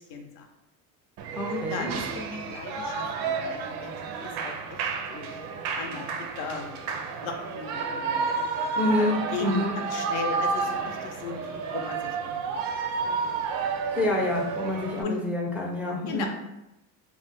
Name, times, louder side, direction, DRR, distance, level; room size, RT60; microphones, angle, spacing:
voice 1, 0.1-0.5 1.5-3.9 4.2-6.8 7.2-8.2 9.0-12.6 13.0-13.4 15.0-15.2 16.1-16.3, left 4 dB, 80° left, 3 dB, 0.7 m, -37 dB
Shout / Cheering, 1.2-15.0, right 5 dB, 65° right, 0.5 m, -31 dB
voice 2, 1.3-1.9 8.8-9.7 13.9-16.3, left 1 dB, 5° right, -2 dB, 0.3 m, -27 dB
2.4 x 2.1 x 3.9 m, 0.91 s
cardioid pair, 115°, 39 cm